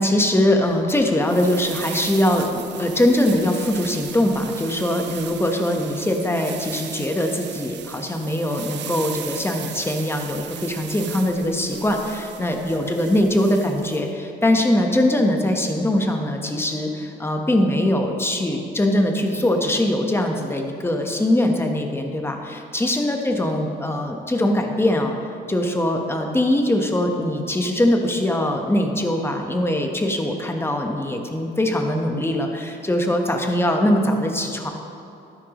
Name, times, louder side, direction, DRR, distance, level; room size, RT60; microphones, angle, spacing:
voice 1, 0.0-25.1 25.5-34.7, left 1 dB, 10° left, 3 dB, 1.1 m, -22 dB
sound 1, 1.2-14.0, right 10 dB, 60° right, 0.6 m, -37 dB
12.5 x 10.0 x 3.1 m, 2.8 s
cardioid pair, 90°, 20 cm